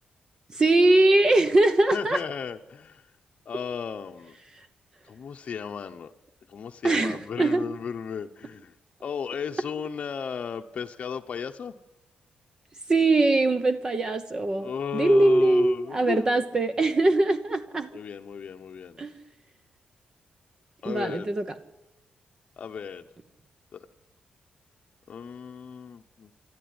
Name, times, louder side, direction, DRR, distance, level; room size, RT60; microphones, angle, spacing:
voice 1, 0.5-2.2 4.6-4.7 6.8-7.6 12.9-17.9 19.0-19.1 20.8-21.4, right 2 dB, 25° right, 8 dB, 1.0 m, -22 dB
voice 2, 1.9-3.1 3.4-4.4 5.0-6.1 6.5-8.7 9.0-11.8 14.6-16.4 17.9-19.0 20.8-21.3 22.6-23.1 23.7-23.9 25.1-26.3, left 7 dB, 50° left, 4 dB, 0.9 m, -35 dB
25.5 x 13.0 x 9.6 m, 1.0 s
wide cardioid pair, 165°, 3 cm